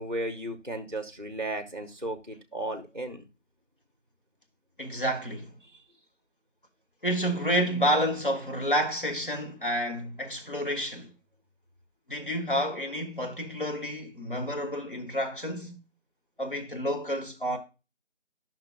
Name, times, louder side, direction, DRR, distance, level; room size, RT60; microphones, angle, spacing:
voice 1, 0.0-3.2, right 1 dB, 40° right, 0.6 m, -35 dB
voice 2, 4.8-5.5 7.0-11.1 12.1-15.8 16.4-17.6, equal, 45° left, 1.3 m, -29 dB
11.5 x 5.8 x 2.5 m
figure-of-eight pair, 175°, 36 cm